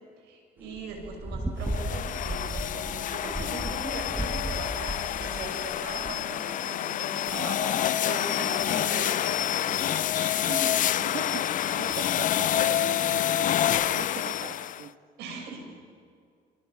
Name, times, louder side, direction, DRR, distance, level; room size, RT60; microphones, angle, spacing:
voice 1, 0.2-10.8 15.2-15.7, right 3 dB, 90° right, 2 dB, 6.4 m, -39 dB
sound 1, 0.7-6.1, right 1 dB, 10° right, 1.9 m, -35 dB
sound 2, 1.6-14.9, left 11 dB, 50° left, 0.6 m, -28 dB
voice 2, 11.0-14.9, right 9 dB, 65° right, 6 dB, 1.5 m, -41 dB
27.5 x 25.5 x 6.1 m, 2.2 s
cardioid pair, 110°, 17 cm